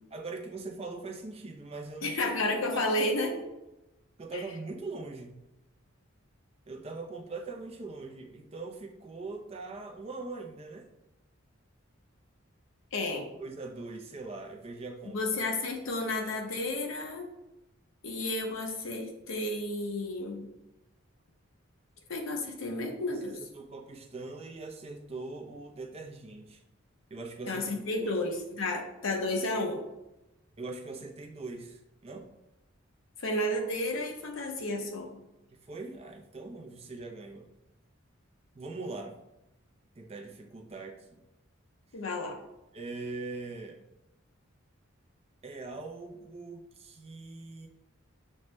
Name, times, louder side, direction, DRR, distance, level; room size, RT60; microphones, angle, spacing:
voice 1, 0.1-2.2 2.7-2.8 4.2-5.4 6.7-10.9 13.4-15.2 23.1-26.6 27.1-27.7 28.0-28.1 28.6-28.8 30.6-32.3 35.5-37.5 38.5-39.2 40.0-41.2 42.7-43.8 45.4-47.7, right 3 dB, 30° right, 3 dB, 0.4 m, -41 dB
voice 2, 2.0-3.5 4.3-4.4 12.9-13.3 15.1-17.3 18.0-20.5 22.1-23.4 27.5-29.8 33.2-35.2 41.9-42.4, left 2 dB, 70° left, 2 dB, 0.7 m, -32 dB
6.3 x 2.1 x 3.1 m, 0.95 s
head